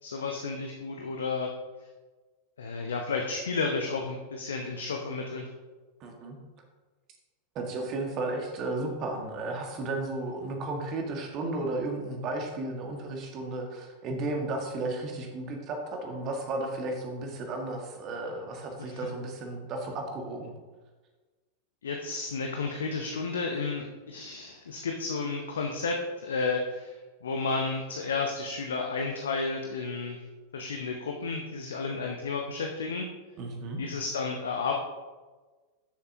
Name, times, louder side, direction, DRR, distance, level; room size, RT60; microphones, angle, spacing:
voice 1, 0.0-1.5 2.6-5.5 18.9-19.0 21.8-27.0 27.2-30.2 30.5-33.1 33.8-34.7, left 4 dB, 65° left, 2 dB, 0.8 m, -32 dB
voice 2, 6.0-6.4 7.5-20.5 33.4-33.8, right 2 dB, 35° right, 2 dB, 1.6 m, -34 dB
11.0 x 6.8 x 2.8 m, 1.3 s
figure-of-eight pair, 90°, 0 cm